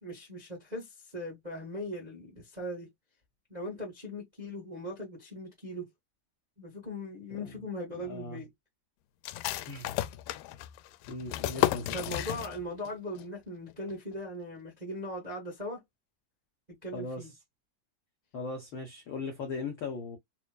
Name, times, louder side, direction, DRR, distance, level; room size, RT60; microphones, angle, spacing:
voice 1, 0.0-2.9 3.5-5.9 6.6-8.5 11.9-15.8 16.7-17.3, left 1 dB, 30° right, 0.7 m, -39 dB
voice 2, 7.9-8.4 9.6-9.9 11.1-12.2 16.9-17.3 18.3-20.2, left 3 dB, 70° left, 1.1 m, -39 dB
sound 1, 9.2-12.9 13.2-13.3 13.7-14.2, left 15 dB, 90° left, 2.2 m, -33 dB
5.6 x 2.5 x 2.2 m
omnidirectional pair, 3.8 m